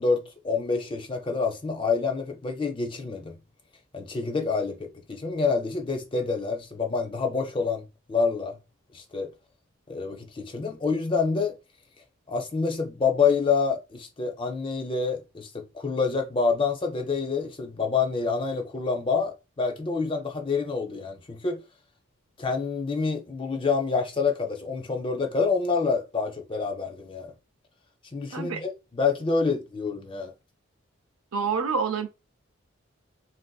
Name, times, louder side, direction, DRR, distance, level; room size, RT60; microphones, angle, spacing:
voice 1, 0.0-3.4 3.9-8.6 8.9-9.3 9.9-11.5 12.3-21.6 22.4-27.3 28.1-30.3, left 4 dB, 25° left, 0.4 m, -27 dB
voice 2, 31.3-32.1, right 5 dB, 85° right, 0.5 m, -27 dB
3.3 x 2.5 x 2.2 m
head